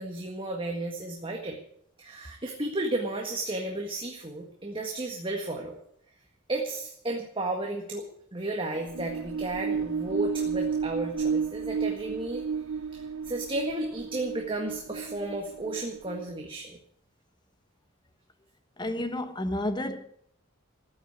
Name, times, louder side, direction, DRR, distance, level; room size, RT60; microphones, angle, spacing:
voice 1, 0.0-1.6 2.0-5.7 6.5-8.1 8.3-12.5 12.9-16.8, right 2 dB, 25° right, 1.8 m, -33 dB
sound 1, 8.7-16.4, right 6 dB, 80° right, 0.7 m, -32 dB
voice 2, 18.8-20.1, left 1 dB, 20° left, 1.2 m, -31 dB
14.5 x 8.7 x 9.3 m
head